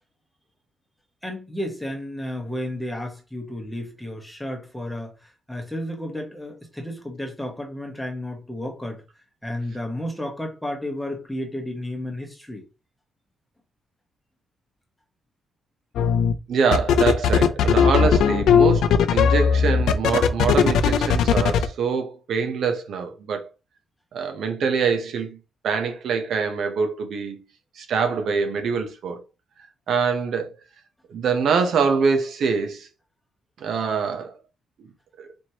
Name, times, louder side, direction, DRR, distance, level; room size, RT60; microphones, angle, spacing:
voice 1, 1.2-9.0 9.4-12.6, left 1 dB, 5° left, 1.1 m, -32 dB
sound 1, 16.0-16.3 16.7-21.7, left 7 dB, 80° left, 0.4 m, -18 dB
voice 2, 16.5-23.5 24.1-25.4 25.6-27.4 27.8-29.2 29.9-30.5 31.1-32.9 33.6-34.3 35.2-35.3, right 5 dB, 60° right, 0.7 m, -24 dB
4.4 x 3.1 x 2.9 m
cardioid pair, 145°, 0 cm